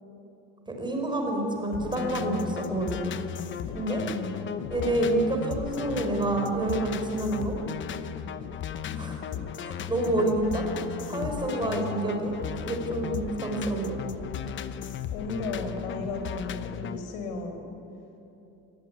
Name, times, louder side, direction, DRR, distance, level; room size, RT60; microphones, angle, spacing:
voice 1, 0.7-3.1 3.7-4.0 4.7-7.6 8.9-9.2 9.6-10.6 11.1-12.3 12.6-14.0, right 1 dB, 10° right, 2 dB, 4.4 m, -28 dB
sound 1, 1.7-17.0, left 8 dB, 30° left, 0.9 m, -36 dB
voice 2, 3.9-4.4 8.9-9.0 11.6-12.1 15.1-17.7, left 3 dB, 75° left, 6 dB, 4.8 m, -35 dB
25.5 x 20.0 x 9.6 m, 2.8 s
cardioid pair, 160°, 38 cm